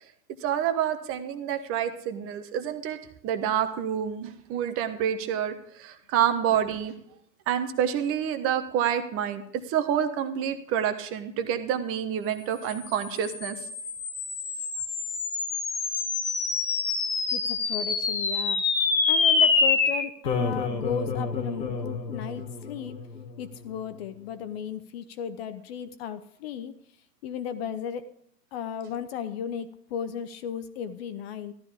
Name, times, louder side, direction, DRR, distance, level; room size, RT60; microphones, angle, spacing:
voice 1, 0.4-3.0 3.2-6.9 7.5-13.6, right 9 dB, 25° right, 9 dB, 1.2 m, -28 dB
sound 1, 12.8-23.4, left 4 dB, 90° left, 1.8 m, -27 dB
voice 2, 17.3-18.6 19.1-23.0 23.4-26.7 27.2-28.1 28.5-31.5, left 8 dB, 40° left, 12 dB, 0.9 m, -35 dB
14.0 x 12.5 x 3.6 m, 0.69 s
figure-of-eight pair, 115°, 50 cm